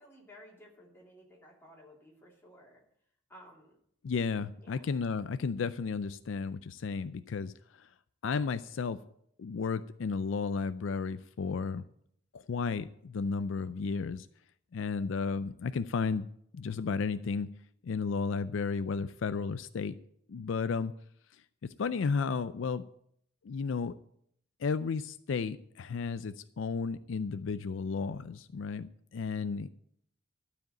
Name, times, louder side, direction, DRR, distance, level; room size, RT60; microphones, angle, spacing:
voice 1, 0.0-2.8 3.3-3.8 4.6-4.8, equal, 10° left, -3 dB, 3.0 m, -55 dB
voice 2, 4.0-7.9 8.2-9.0 9.4-11.8 12.3-14.3 14.7-16.3 16.5-17.5 17.8-20.0 20.3-20.9 21.8-22.8 23.4-24.0 24.6-29.7, left 5 dB, 70° left, 13 dB, 0.4 m, -33 dB
12.0 x 5.0 x 8.8 m, 0.70 s
head